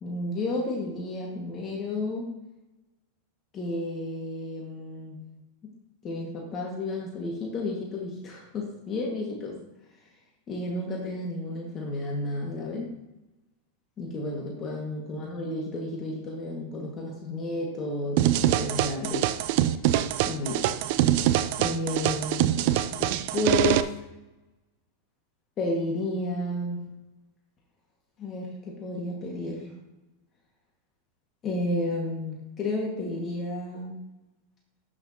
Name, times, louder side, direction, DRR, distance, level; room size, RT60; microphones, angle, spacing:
voice 1, 0.0-2.3 3.5-5.2 6.0-9.6 10.5-12.9 14.0-19.3 20.3-20.7 21.6-23.9 25.6-26.8 28.2-29.7 31.4-34.0, left 2 dB, 30° left, -2 dB, 1.8 m, -32 dB
sound 1, 18.2-23.8, right 13 dB, 60° right, 0.5 m, -24 dB
12.0 x 6.5 x 2.9 m, 1.0 s
hypercardioid pair, 125°, 0 cm